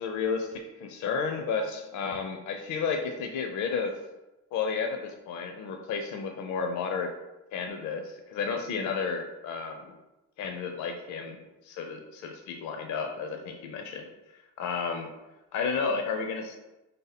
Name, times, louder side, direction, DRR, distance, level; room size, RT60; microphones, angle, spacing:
voice 1, 0.0-4.0 4.5-7.2 7.5-9.9 10.4-11.4 11.6-15.1 15.5-16.6, left 5 dB, 70° left, 4 dB, 0.5 m, -32 dB
3.3 x 2.7 x 4.0 m, 1.0 s
cardioid pair, 90°, 30 cm